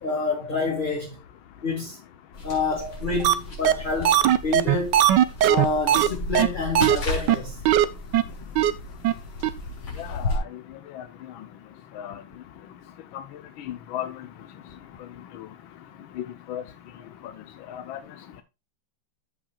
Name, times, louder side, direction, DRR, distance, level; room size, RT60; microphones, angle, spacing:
voice 1, 0.0-1.2 1.6-2.0 2.4-5.0 5.5-7.6, left 3 dB, 25° left, 1.9 m, -28 dB
sound 1, 2.3-10.4, left 1 dB, 55° left, 4.0 m, -34 dB
sound 2, 3.2-3.3 3.6-3.7 4.0-6.1 6.3-6.5 6.8-7.0 7.3-7.4 7.7-7.8 8.1-8.2 8.6-8.7 9.0-9.1 9.4-9.5, right 11 dB, 70° right, 1.3 m, -18 dB
voice 2, 10.0-10.4 10.9-11.0 12.0-12.1 13.7-14.1 16.5-16.6 17.7-18.0, left 11 dB, 80° left, 1.6 m, -33 dB
14.5 x 5.8 x 2.3 m
omnidirectional pair, 2.2 m